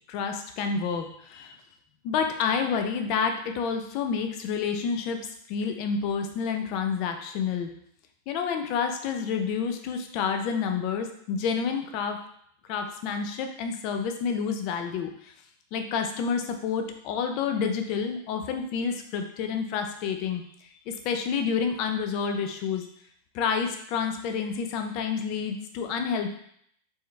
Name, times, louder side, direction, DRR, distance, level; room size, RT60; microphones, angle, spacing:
voice 1, 0.1-1.6 2.0-5.2 5.5-7.7 8.3-12.2 12.7-15.3 15.7-22.9 23.3-26.3, left 6 dB, 35° left, 5 dB, 0.5 m, -29 dB
4.4 x 3.3 x 3.2 m, 0.68 s
supercardioid pair, 180°, 0 cm